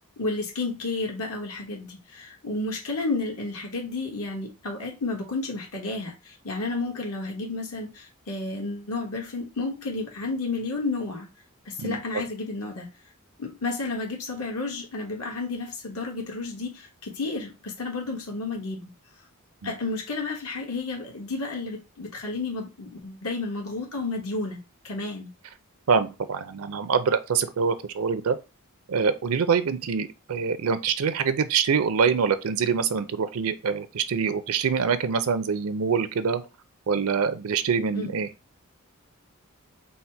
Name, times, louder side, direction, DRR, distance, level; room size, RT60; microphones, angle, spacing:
voice 1, 0.2-11.3 11.6-12.9 13.4-18.9 19.6-25.3 37.9-38.1, left 3 dB, 80° left, 1.4 m, -31 dB
voice 2, 25.9-28.4 28.9-36.4 36.9-38.3, right 6 dB, 70° right, 0.5 m, -25 dB
4.2 x 2.1 x 4.5 m
head